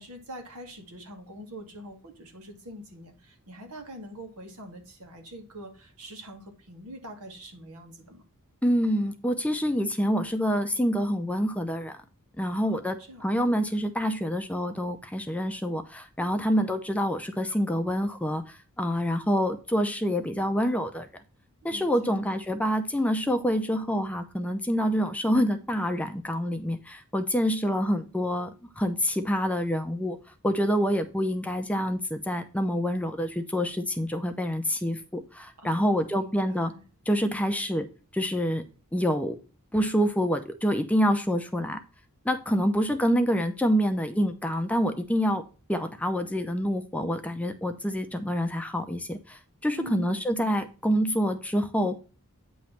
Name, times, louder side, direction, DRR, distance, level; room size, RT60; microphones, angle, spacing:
voice 1, 0.0-8.2 12.7-13.3 21.7-22.2 35.6-36.8 49.8-50.2, equal, 85° right, 4 dB, 1.8 m, -44 dB
voice 2, 8.6-12.0 12.4-21.1 21.6-28.5 28.8-30.2 30.4-36.7 37.1-37.9 38.1-38.6 38.9-39.4 39.7-41.8 42.2-45.4 45.7-52.0, equal, 5° left, 7 dB, 0.6 m, -27 dB
9.1 x 3.1 x 5.7 m, 0.35 s
head